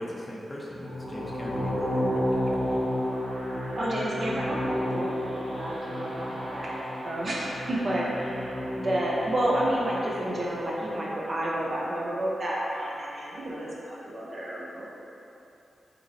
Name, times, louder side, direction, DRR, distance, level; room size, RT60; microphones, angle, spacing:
voice 1, 0.0-2.9, left 1 dB, 30° left, -4 dB, 0.6 m, -38 dB
sound 1, 0.7-10.9, equal, 65° right, 1.3 m, -31 dB
voice 2, 3.7-14.9, right 1 dB, 50° right, -5 dB, 0.7 m, -30 dB
3.9 x 3.0 x 2.6 m, 2.8 s
cardioid pair, 55°, 0 cm